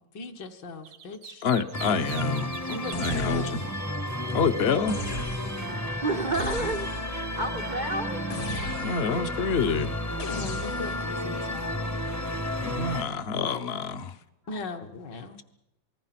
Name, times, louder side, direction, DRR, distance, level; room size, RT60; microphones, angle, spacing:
voice 1, 0.0-1.4 2.7-3.6 4.3-4.4 5.4-6.3 8.9-9.2 10.2-12.0 14.5-15.4, left 3 dB, 65° left, 5 dB, 2.0 m, -40 dB
sound 1, 0.8-3.2, right 9 dB, 75° right, 1.7 m, -42 dB
voice 2, 1.4-3.6 4.3-5.0 8.8-10.0 12.6-14.2, left 5 dB, 45° left, 11 dB, 0.9 m, -27 dB
sound 2, 1.7-13.0, left 1 dB, 15° left, 0.8 m, -32 dB
sound 3, 2.9-3.8 4.9-5.7 6.3-7.2 8.3-9.2 10.2-11.1, left 2 dB, 90° left, 2.9 m, -36 dB
voice 3, 6.0-6.9 7.4-8.2 9.5-9.6 10.1-10.2 14.5-14.6, right 2 dB, 50° right, 6 dB, 0.5 m, -30 dB
27.0 x 19.5 x 6.0 m, 0.87 s
omnidirectional pair, 2.1 m